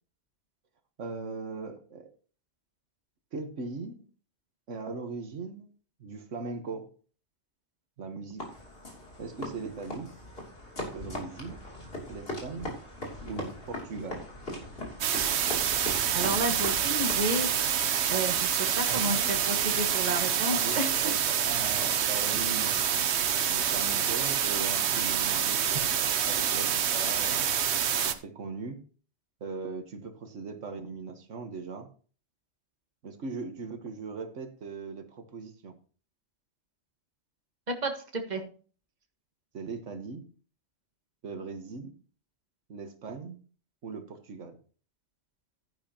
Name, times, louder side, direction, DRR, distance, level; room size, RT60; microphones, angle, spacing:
voice 1, 1.0-2.1 3.3-4.0 4.7-5.7 6.0-6.9 8.0-8.4 9.2-10.1 10.9-11.6 12.1-12.8 13.2-14.3 18.9-19.4 20.5-23.1 23.5-25.9 26.2-27.5 28.0-28.8 29.4-31.9 33.0-35.7 39.5-40.3 41.2-41.9 42.7-43.4 43.8-44.6, right 4 dB, 90° right, 7 dB, 1.6 m, -39 dB
sound 1, 8.4-17.7, left 1 dB, 50° left, 3.3 m, -40 dB
sound 2, 15.0-28.1, right 8 dB, 65° right, 1.0 m, -27 dB
voice 2, 16.1-17.5 18.1-20.9 37.7-38.4, right 1 dB, 35° right, 4 dB, 1.6 m, -31 dB
11.5 x 10.0 x 2.9 m, 0.40 s
omnidirectional pair, 1.2 m